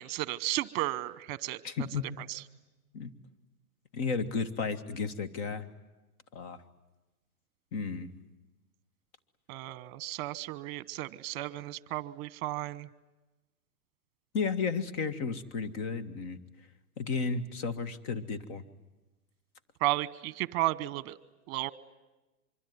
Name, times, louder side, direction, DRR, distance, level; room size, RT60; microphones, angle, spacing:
voice 1, 0.0-1.6 2.3-2.4 9.5-12.9 19.8-21.2 21.5-21.7, right 17 dB, 40° right, 18 dB, 1.1 m, -33 dB
voice 2, 1.6-2.1 2.9-3.1 3.9-5.7 6.3-6.6 7.7-8.1 14.3-16.4 17.0-18.6, left 5 dB, 45° left, 16 dB, 1.9 m, -33 dB
24.5 x 24.5 x 9.6 m, 1.1 s
hypercardioid pair, 135°, 45 cm